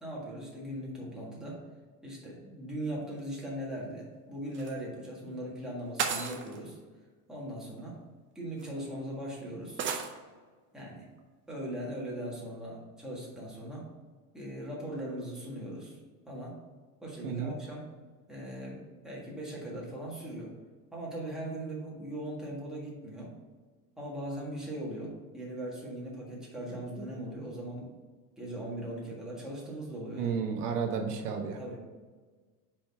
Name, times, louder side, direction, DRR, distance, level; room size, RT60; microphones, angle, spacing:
voice 1, 0.0-1.6 2.0-6.8 7.3-8.0 8.4-9.9 10.7-11.1 11.5-13.9 14.3-16.0 16.3-16.6 17.0-17.9 18.3-20.5 20.9-23.4 24.0-27.9 28.4-30.3 31.6-31.8, right 1 dB, ahead, -5 dB, 1.7 m, -39 dB
sound 1, 4.5-4.7 6.0-6.6 7.8-7.9 8.6-8.7 9.8-10.1, right 6 dB, 25° right, 0.6 m, -33 dB
voice 2, 17.2-17.5 30.2-31.6, right 6 dB, 85° right, 3 dB, 1.2 m, -32 dB
4.8 x 4.2 x 5.8 m, 1.4 s
supercardioid pair, 135°, 44 cm